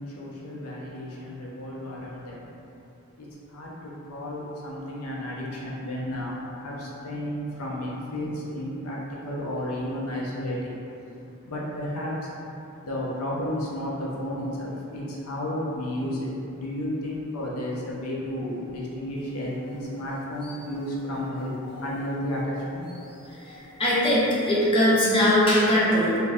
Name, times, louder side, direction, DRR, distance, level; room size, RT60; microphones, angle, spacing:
voice 1, 0.0-2.5 3.2-10.8 11.5-12.3 12.8-21.6 21.8-22.9, left 1 dB, 75° left, -4 dB, 0.5 m, -32 dB
voice 2, 23.8-26.2, left 1 dB, 25° left, -8 dB, 0.5 m, -20 dB
2.5 x 2.1 x 3.4 m, 2.8 s
head